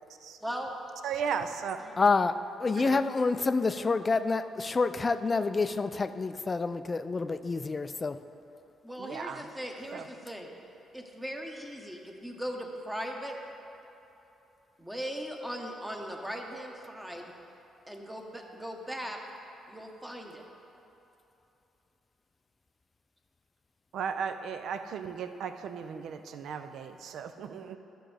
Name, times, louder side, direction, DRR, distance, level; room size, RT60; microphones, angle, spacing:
voice 1, 0.4-0.7 1.8-1.9 8.8-10.5 10.9-13.4 14.8-17.3 17.9-19.2 19.7-20.4, equal, 5° right, 1 dB, 1.0 m, -39 dB
voice 2, 1.0-1.8 2.8-3.0 9.0-9.5 9.9-10.0 23.9-27.8, right 7 dB, 75° right, 8 dB, 0.4 m, -36 dB
voice 3, 2.0-2.3 2.6-8.2, left 4 dB, 30° left, 11 dB, 0.3 m, -28 dB
11.5 x 6.1 x 3.4 m, 3.0 s
cardioid pair, 90°, 0 cm